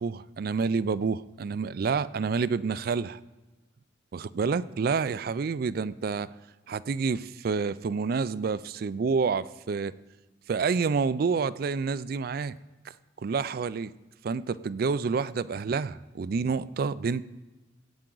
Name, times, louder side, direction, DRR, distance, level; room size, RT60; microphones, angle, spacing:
voice 1, 0.0-3.2 4.1-6.3 6.7-10.0 10.5-12.6 12.9-13.0 13.2-13.9 14.2-17.2, right 5 dB, 50° right, 18 dB, 0.3 m, -28 dB
18.0 x 8.7 x 3.9 m, 1.1 s
head